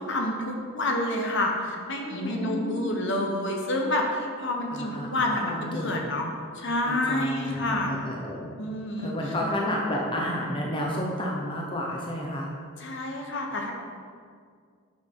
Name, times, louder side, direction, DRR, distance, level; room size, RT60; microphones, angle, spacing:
voice 1, 0.0-6.3 6.5-7.9 8.6-9.1 12.8-13.7, left 1 dB, 55° left, 1 dB, 1.0 m, -28 dB
voice 2, 2.1-3.1 4.7-6.0 6.8-8.5 9.0-12.5, left 1 dB, 20° left, -2 dB, 0.8 m, -31 dB
9.3 x 6.0 x 3.8 m, 2.1 s
head